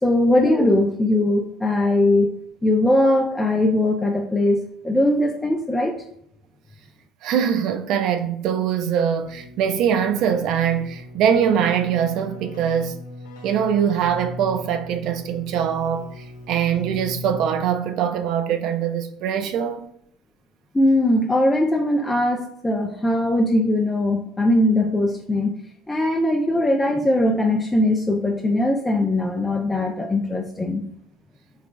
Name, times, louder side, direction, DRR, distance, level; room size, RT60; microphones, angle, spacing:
voice 1, 0.0-2.4 2.6-6.0 20.7-25.5 25.9-30.8, left 1 dB, 15° left, 0.4 m, -20 dB
voice 2, 7.2-12.9 13.4-19.9, right 8 dB, 55° right, 0.4 m, -22 dB
Keyboard (musical), 9.2-17.9, left 2 dB, 75° left, 0.8 m, -39 dB
3.8 x 3.2 x 2.2 m
figure-of-eight pair, 65°, 0 cm